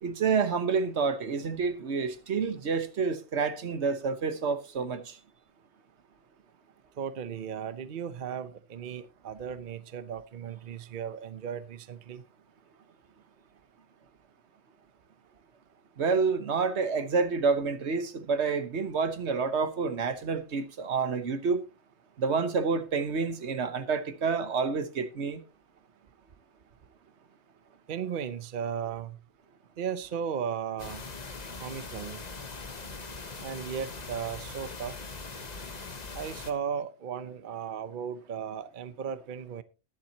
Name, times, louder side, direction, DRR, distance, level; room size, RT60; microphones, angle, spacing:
voice 1, 0.0-5.2 16.0-21.6 22.2-25.4, right 5 dB, 75° right, 1.4 m, -28 dB
voice 2, 7.0-12.2 27.9-29.2 29.8-31.0 31.6-32.2 33.4-34.9 36.1-39.6, right 7 dB, 50° right, 0.8 m, -36 dB
sound 1, 30.8-36.5, left 4 dB, 40° left, 1.2 m, -41 dB
20.5 x 7.5 x 2.8 m
omnidirectional pair, 1.2 m